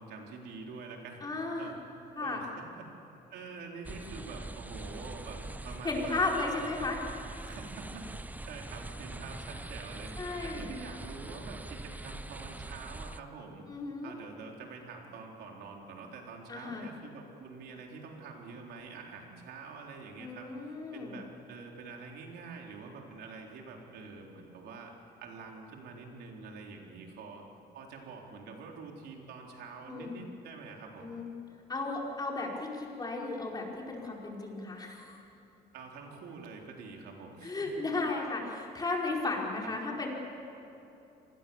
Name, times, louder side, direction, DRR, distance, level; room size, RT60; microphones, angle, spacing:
voice 1, 0.0-1.7 2.2-2.9 3.3-6.3 7.4-13.7 14.0-24.9 25.2-27.4 27.7-31.2 35.7-37.6 39.6-39.7, right 4 dB, 75° right, 1 dB, 4.0 m, -46 dB
voice 2, 1.2-1.7 2.2-2.4 5.8-7.0 10.2-10.6 13.7-14.1 16.5-16.8 20.2-21.2 29.9-30.2 31.0-31.3 31.7-35.2 37.4-40.1, left 3 dB, 25° left, -1 dB, 4.9 m, -34 dB
sound 1, 3.8-13.2, right 2 dB, 10° right, 0.7 m, -43 dB
26.0 x 20.0 x 7.2 m, 3.0 s
cardioid pair, 110°, 17 cm